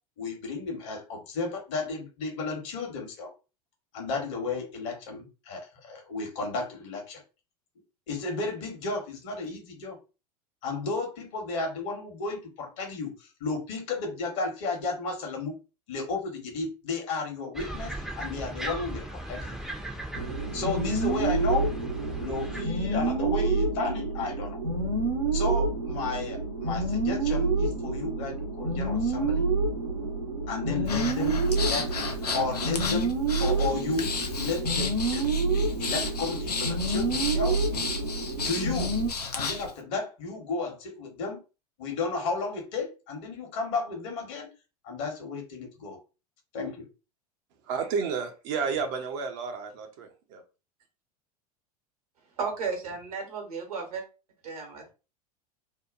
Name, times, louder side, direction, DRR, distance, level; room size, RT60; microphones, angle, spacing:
voice 1, 0.2-3.3 3.9-7.2 8.1-10.0 10.6-13.1 13.4-15.5 15.9-19.0 19.3-19.5 20.5-21.7 22.2-24.6 25.3-29.5 30.5-31.9 32.3-34.1 34.4-35.2 35.5-37.6 38.4-38.9 39.3-41.4 41.8-44.5 44.8-46.0 46.5-46.9, left 3 dB, 50° left, 2 dB, 1.1 m, -33 dB
sound 1, 17.5-22.6, right 1 dB, ahead, 0.5 m, -38 dB
sound 2, 20.1-39.1, right 3 dB, 90° right, 0.9 m, -28 dB
Breathing, 30.8-39.7, left 4 dB, 85° left, 0.5 m, -33 dB
voice 2, 47.6-50.4, right 5 dB, 45° right, 5 dB, 0.6 m, -31 dB
voice 3, 52.4-54.1 54.4-54.9, right 5 dB, 70° right, 3 dB, 1.0 m, -34 dB
2.7 x 2.2 x 2.4 m, 0.31 s
figure-of-eight pair, 85°, 20 cm